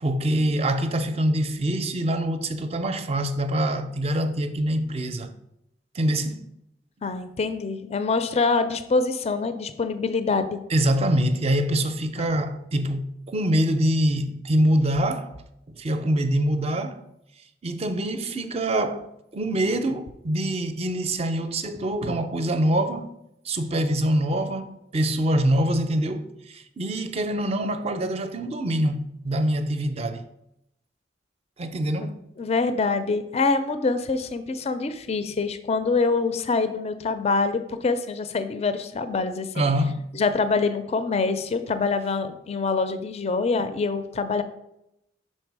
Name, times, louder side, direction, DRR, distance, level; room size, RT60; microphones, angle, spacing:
voice 1, 0.0-5.3 5.9-6.5 10.7-15.3 15.7-17.0 17.6-23.1 23.4-30.3 31.6-32.2 39.5-40.1, right 1 dB, 35° right, 0.5 m, -25 dB
voice 2, 7.0-10.6 32.0-39.7 40.1-44.4, left 4 dB, 35° left, 0.4 m, -25 dB
5.5 x 4.4 x 4.6 m
head